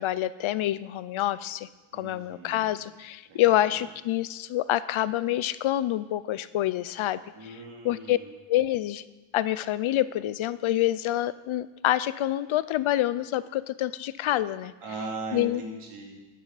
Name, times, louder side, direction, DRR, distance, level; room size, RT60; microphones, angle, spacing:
voice 1, 0.0-7.6 7.8-8.2 8.5-9.0 9.3-14.7 15.3-15.6, left 13 dB, 75° left, 16 dB, 0.6 m, -27 dB
voice 2, 1.9-2.7 3.3-3.6 7.4-8.3 14.8-16.2, right 2 dB, 90° right, -1 dB, 2.7 m, -39 dB
14.5 x 9.5 x 4.1 m, 1.1 s
wide cardioid pair, 130°, 49 cm